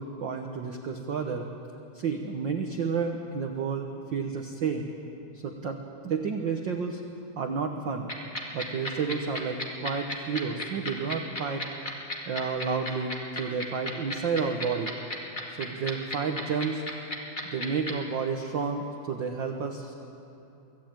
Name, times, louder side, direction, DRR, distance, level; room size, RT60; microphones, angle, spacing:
voice 1, 0.0-1.5 1.9-4.9 5.3-5.8 6.0-7.0 7.3-8.1 8.5-11.6 12.3-14.9 15.5-16.8 17.4-19.9, right 5 dB, 65° right, 4 dB, 1.1 m, -31 dB
sound 1, 8.1-17.9, left 1 dB, 20° left, 1.8 m, -33 dB
24.0 x 15.0 x 8.9 m, 2.8 s
omnidirectional pair, 3.6 m